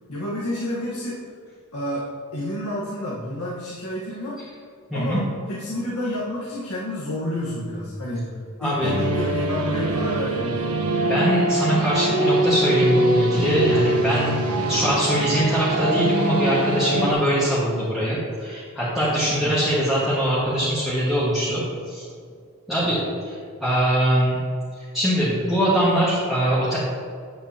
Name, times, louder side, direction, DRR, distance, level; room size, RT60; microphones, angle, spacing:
voice 1, 0.1-1.2 1.7-2.1 2.3-4.4 4.9-8.3 8.6-10.7 14.7-14.8 19.4-19.6 22.8-22.9, left 1 dB, 85° left, -6 dB, 1.4 m, -30 dB
voice 2, 8.6-8.9 11.1-14.4 14.7-22.0 22.7-24.4 24.8-26.8, equal, ahead, -12 dB, 1.6 m, -22 dB
sound 1, 8.8-17.1, right 1 dB, 90° right, 1.1 m, -23 dB
9.4 x 8.3 x 2.9 m, 2.2 s
head